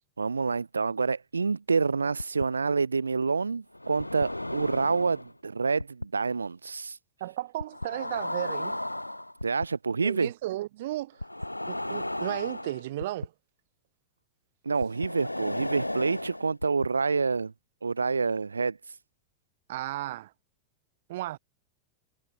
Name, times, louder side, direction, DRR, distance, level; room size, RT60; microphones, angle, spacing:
voice 1, 0.2-7.0 9.4-10.3 14.6-17.5 17.8-19.0, right 4 dB, 75° right, 0.8 m, -28 dB
sound 1, 2.2-2.4 3.7-5.3 5.8-6.1 7.6-9.7 11.2-13.3 14.8-16.9, left 1 dB, 85° left, 2.3 m, -34 dB
voice 2, 7.2-8.8 10.0-11.2 11.7-13.3 19.7-20.3 21.1-21.4, right 15 dB, 55° right, 3.2 m, -34 dB
figure-of-eight pair, 90°, 0 cm